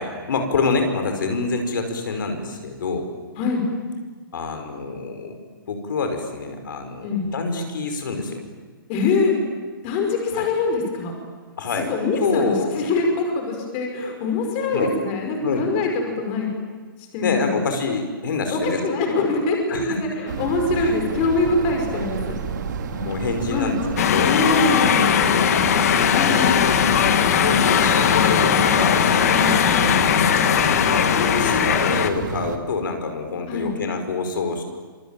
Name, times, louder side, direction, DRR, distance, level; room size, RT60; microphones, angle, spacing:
voice 1, 0.0-3.1 4.3-5.4 5.7-8.4 10.3-10.4 11.6-11.9 12.2-12.7 14.7-14.9 15.4-15.6 17.2-18.8 19.1-19.3 19.7-20.0 20.8-20.9 22.9-23.8 24.1-24.3 26.1-26.7 27.4-29.5 30.9-34.6, left 4 dB, 65° left, 6 dB, 5.1 m, -26 dB
voice 2, 8.9-9.3 9.8-11.1 11.9-15.9 16.2-16.5 17.1-17.6 18.5-22.4 23.5-23.8 24.2-25.0 26.1-26.5 29.3-29.5 33.5-33.7, left 3 dB, 25° left, 2 dB, 5.5 m, -23 dB
sound 1, 20.3-32.6, right 6 dB, 55° right, 2.8 m, -30 dB
sound 2, 24.0-32.1, left 8 dB, 45° left, 1.8 m, -19 dB
26.5 x 25.0 x 9.0 m, 1.4 s
hypercardioid pair, 170°, 12 cm